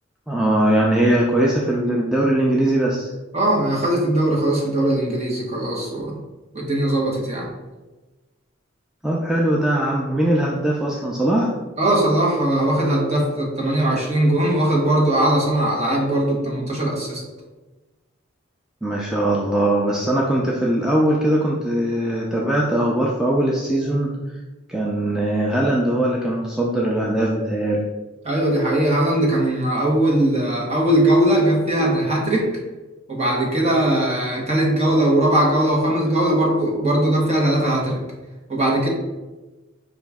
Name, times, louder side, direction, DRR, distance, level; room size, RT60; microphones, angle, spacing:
voice 1, 0.3-3.1 9.0-11.5 18.8-24.1 24.7-27.8, right 1 dB, 5° right, -4 dB, 0.4 m, -20 dB
voice 2, 3.3-6.2 6.5-7.5 11.8-17.2 28.2-32.5 33.1-38.0 38.5-38.9, right 1 dB, 35° right, -2 dB, 1.1 m, -20 dB
4.7 x 3.0 x 3.5 m, 1.2 s
head